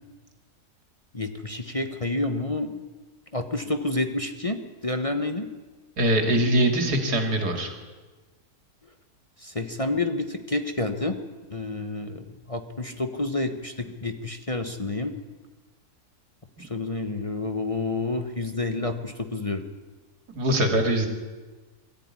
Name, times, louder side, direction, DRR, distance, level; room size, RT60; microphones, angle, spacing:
voice 1, 1.1-2.8 3.3-5.5 9.4-11.2 11.5-15.1 16.6-19.7, left 2 dB, 25° left, 6 dB, 1.2 m, -29 dB
voice 2, 6.0-7.7 20.3-21.1, right 1 dB, 85° right, 5 dB, 3.1 m, -22 dB
22.5 x 13.5 x 9.7 m, 1.3 s
omnidirectional pair, 1.7 m